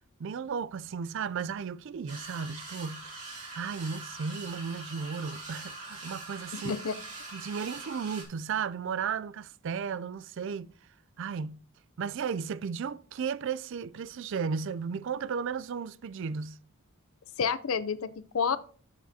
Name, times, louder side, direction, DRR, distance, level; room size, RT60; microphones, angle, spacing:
voice 1, 0.2-3.2 3.5-6.8 7.3-10.7 11.2-11.7 12.0-16.6, right 6 dB, 55° right, 0.3 m, -34 dB
sound 1, 2.1-8.2, right 2 dB, 35° right, 2.7 m, -43 dB
voice 2, 6.5-7.0 17.4-18.6, left 6 dB, 70° left, 0.5 m, -29 dB
12.0 x 7.2 x 2.8 m
head